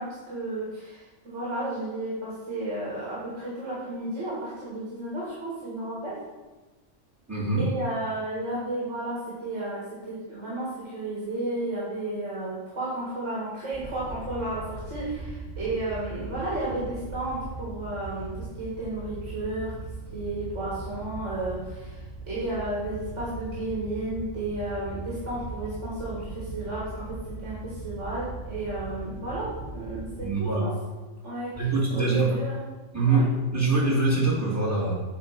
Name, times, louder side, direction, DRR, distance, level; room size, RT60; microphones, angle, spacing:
voice 1, 0.0-6.2 7.6-18.3 18.6-19.7 20.1-22.0 22.3-30.7 31.2-31.5 31.9-32.6 33.1-33.3, right 2 dB, 65° right, -8 dB, 2.1 m, -33 dB
voice 2, 7.3-7.7 30.2-30.6 31.6-32.4 32.9-34.9, right 3 dB, 15° right, -6 dB, 1.7 m, -24 dB
Wind / Boat Water vehicle, 13.7-30.2, right 3 dB, 75° left, 2.2 m, -39 dB
8.5 x 3.0 x 5.7 m, 1.2 s
omnidirectional pair, 1.3 m